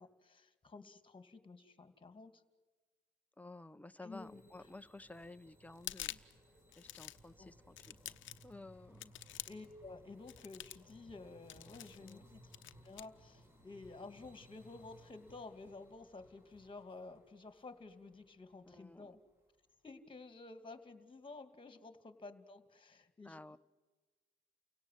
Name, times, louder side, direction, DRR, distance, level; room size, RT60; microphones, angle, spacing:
voice 1, 0.0-2.4 4.0-4.4 7.4-7.5 9.5-12.5 12.8-19.2 19.8-23.6, left 3 dB, 25° left, 10 dB, 2.5 m, -52 dB
voice 2, 3.4-6.2 6.8-8.2 8.4-9.1 12.0-12.3 18.6-19.2 23.2-23.6, left 2 dB, 5° left, 11 dB, 0.9 m, -53 dB
sound 1, 4.1-19.4, equal, 10° right, 4.2 m, -63 dB
sound 2, 5.7-6.4 6.7-7.3 7.8-8.5 9.0-9.7 10.3-10.9 11.5-12.2 12.5-13.0, left 13 dB, 70° left, 0.9 m, -47 dB
29.5 x 17.5 x 9.3 m, 1.3 s
cardioid pair, 90°, 20 cm